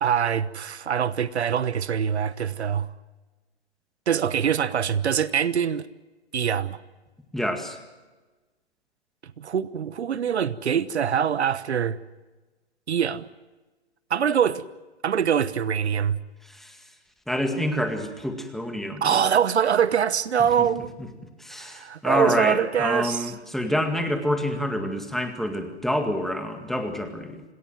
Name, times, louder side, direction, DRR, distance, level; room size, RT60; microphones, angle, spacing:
voice 1, 0.0-2.9 4.1-5.9 6.3-6.8 9.4-12.0 12.9-13.2 14.1-14.6 15.0-16.2 19.0-20.9 21.6-23.3, right 8 dB, 70° right, 1.2 m, -24 dB
voice 2, 7.3-7.8 16.4-16.8 17.3-19.0 21.4-27.4, equal, ahead, 2.0 m, -27 dB
27.0 x 19.5 x 7.7 m
hypercardioid pair, 135°, 34 cm